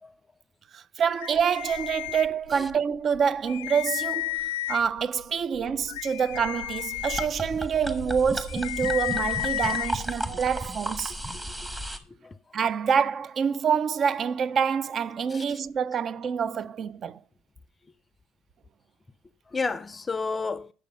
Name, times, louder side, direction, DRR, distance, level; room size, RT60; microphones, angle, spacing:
voice 1, 0.7-4.4 4.7-11.2 12.5-17.2, right 7 dB, 45° right, 0.4 m, -26 dB
sound 1, 1.2-2.7 3.1-3.2 3.5-5.0 5.6-9.9, left 15 dB, 90° left, 0.4 m, -33 dB
sound 2, 7.0-12.0, equal, 15° right, 1.2 m, -34 dB
voice 2, 15.3-15.6 19.5-20.7, left 4 dB, 25° left, 0.4 m, -32 dB
8.5 x 6.5 x 5.4 m
supercardioid pair, 80°, 0 cm